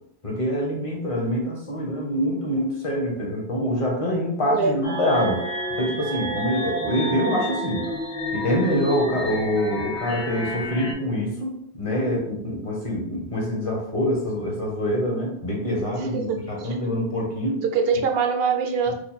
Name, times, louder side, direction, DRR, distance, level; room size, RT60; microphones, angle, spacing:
voice 1, 0.2-5.5 5.8-7.8 8.3-17.6, equal, 35° left, -2 dB, 0.9 m, -25 dB
sound 1, 4.8-10.9, equal, 80° left, 1.4 m, -30 dB
voice 2, 16.0-16.9 17.6-18.9, right 5 dB, 70° right, 4 dB, 0.8 m, -24 dB
3.1 x 2.1 x 4.0 m, 0.71 s
omnidirectional pair, 1.1 m